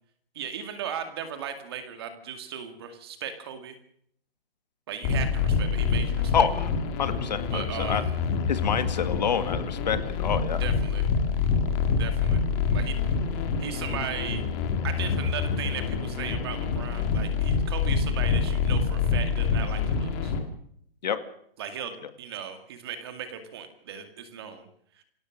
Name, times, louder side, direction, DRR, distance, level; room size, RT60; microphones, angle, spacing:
voice 1, 0.3-3.8 4.9-6.4 7.5-8.2 10.6-11.0 11.9-12.4 12.7-13.0 13.3-14.4 14.8-20.3 21.6-24.7, right 8 dB, 25° right, 8 dB, 2.2 m, -37 dB
sound 1, 5.0-20.4, left 5 dB, 15° left, 1.8 m, -26 dB
voice 2, 6.3-6.7 7.0-8.0 8.5-10.6 21.0-21.2, left 7 dB, 45° left, 10 dB, 2.1 m, -27 dB
26.5 x 17.0 x 6.5 m, 0.67 s
hypercardioid pair, 175°, 30 cm